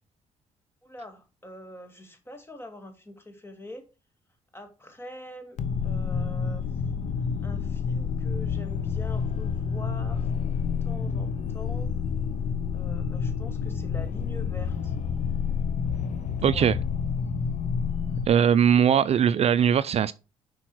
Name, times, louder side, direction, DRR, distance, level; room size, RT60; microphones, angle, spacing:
voice 1, 0.8-3.8 4.5-6.7 7.4-11.9 12.7-14.9 16.3-16.7, left 1 dB, 15° left, 1.8 m, -44 dB
sound 1, 5.6-18.3, left 6 dB, 65° left, 0.7 m, -29 dB
voice 2, 16.4-16.8 18.3-20.1, right 8 dB, 50° right, 0.4 m, -20 dB
6.0 x 4.7 x 4.4 m
cardioid pair, 80°, 14 cm